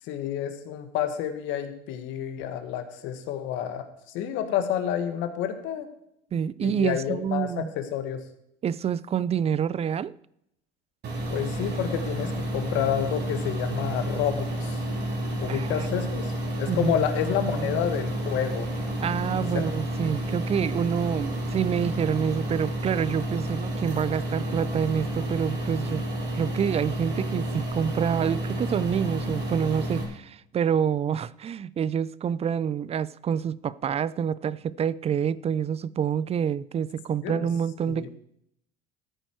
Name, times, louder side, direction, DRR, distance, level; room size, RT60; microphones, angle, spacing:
voice 1, 0.1-3.9 4.1-5.9 6.6-8.2 11.3-14.8 15.4-16.3 16.6-18.7 19.4-19.7 37.2-37.5 37.8-38.1, left 10 dB, 70° left, 1.7 m, -29 dB
voice 2, 6.3-7.7 8.6-10.1 15.5-16.1 16.7-17.1 17.6-17.8 19.0-26.0 26.3-38.1, right 8 dB, 30° right, 0.4 m, -27 dB
sound 1, 11.0-30.0, right 1 dB, 55° right, 3.8 m, -30 dB
13.5 x 9.0 x 4.6 m
supercardioid pair, 95°, 20 cm